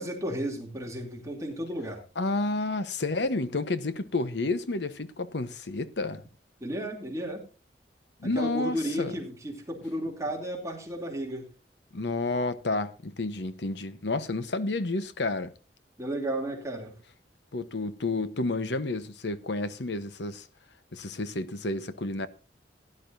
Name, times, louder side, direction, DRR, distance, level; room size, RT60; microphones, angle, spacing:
voice 1, 0.0-2.0 6.6-7.4 8.2-11.5 16.0-16.9, right 1 dB, 20° right, 2.8 m, -33 dB
voice 2, 2.2-6.2 8.2-9.1 11.9-15.5 17.5-20.5 20.9-22.3, left 2 dB, 75° left, 1.0 m, -30 dB
17.0 x 11.0 x 2.6 m
head